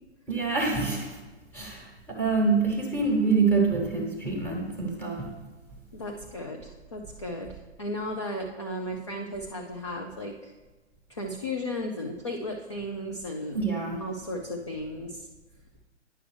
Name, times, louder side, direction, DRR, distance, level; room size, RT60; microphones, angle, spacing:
voice 1, 0.3-1.2 1.5-5.3 13.5-14.0, right 4 dB, 5° left, -1 dB, 1.2 m, -26 dB
voice 2, 5.9-10.5 11.1-13.6 14.0-15.3, left 1 dB, 25° left, 1 dB, 0.3 m, -35 dB
10.0 x 5.8 x 3.2 m, 1.2 s
figure-of-eight pair, 135°, 36 cm